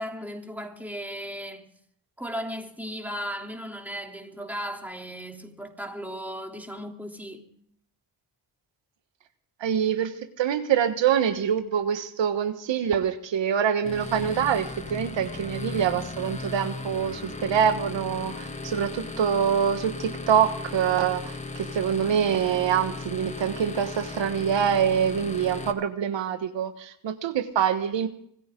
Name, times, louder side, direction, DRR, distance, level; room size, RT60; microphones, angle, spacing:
voice 1, 0.0-1.7 2.2-7.5, equal, 5° right, 3.3 m, -36 dB
voice 2, 9.6-10.1 10.4-28.1, right 8 dB, 80° right, 1.4 m, -25 dB
sound 1, 13.8-25.7, left 3 dB, 15° left, 1.8 m, -36 dB
26.0 x 14.5 x 3.8 m
cardioid pair, 70°, 44 cm